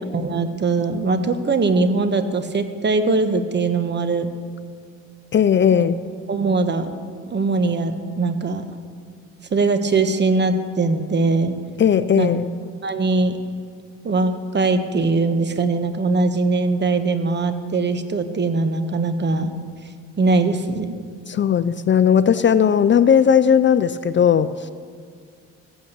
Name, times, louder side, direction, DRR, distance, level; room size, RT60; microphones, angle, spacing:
voice 1, 0.1-4.3 5.7-5.9 6.3-6.9 7.3-8.7 9.5-11.5 12.2-12.3 12.8-13.4 14.0-19.5 20.2-21.0, right 3 dB, 35° right, 9 dB, 1.2 m, -21 dB
voice 2, 5.3-6.0 11.8-12.5 21.3-24.5, left 8 dB, 40° left, 14 dB, 0.5 m, -16 dB
14.5 x 8.8 x 8.0 m, 2.1 s
cardioid pair, 90°, 30 cm